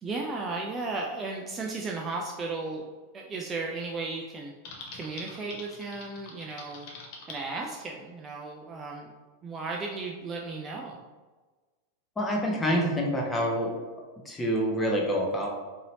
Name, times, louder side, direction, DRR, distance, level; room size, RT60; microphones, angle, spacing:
voice 1, 0.0-2.9 3.1-4.5 4.9-6.9 7.3-9.1 9.4-11.0, right 3 dB, 20° right, 0 dB, 0.4 m, -35 dB
Typing, 4.6-7.4, left 3 dB, 45° left, 0.7 m, -44 dB
voice 2, 12.2-13.7 14.2-15.5, equal, 15° left, -1 dB, 0.8 m, -27 dB
4.0 x 2.8 x 2.7 m, 1.3 s
figure-of-eight pair, 90°, 0 cm